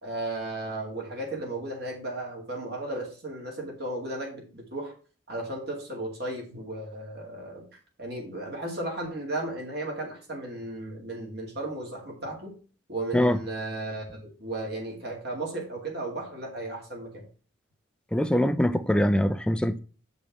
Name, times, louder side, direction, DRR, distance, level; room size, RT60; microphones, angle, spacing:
voice 1, 0.0-4.9 5.3-7.7 8.0-12.5 12.9-17.2, right 2 dB, 55° right, 2.3 m, -35 dB
voice 2, 18.1-19.8, equal, 5° left, 0.4 m, -23 dB
7.4 x 5.2 x 4.6 m
head